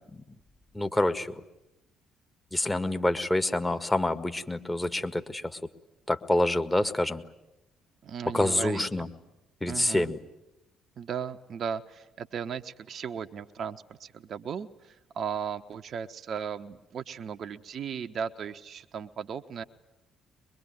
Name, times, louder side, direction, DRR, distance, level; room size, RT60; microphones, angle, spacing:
voice 1, 0.7-1.4 2.5-5.4 6.1-7.2 8.3-9.1 9.6-10.2, left 1 dB, 10° left, 8 dB, 1.7 m, -27 dB
voice 2, 8.0-8.8 9.7-10.1 11.0-19.6, right 7 dB, 45° right, 9 dB, 1.0 m, -36 dB
23.0 x 23.0 x 9.6 m, 0.94 s
figure-of-eight pair, 45°, 0 cm